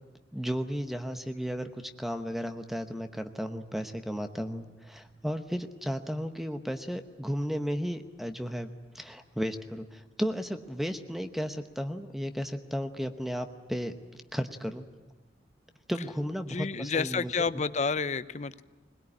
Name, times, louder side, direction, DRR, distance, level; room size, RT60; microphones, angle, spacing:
voice 1, 0.3-8.7 8.9-13.9 14.3-14.8 15.9-17.3, equal, ahead, 7 dB, 0.9 m, -34 dB
voice 2, 16.5-18.6, left 4 dB, 40° left, 14 dB, 0.7 m, -30 dB
21.5 x 20.5 x 9.9 m, 1.2 s
head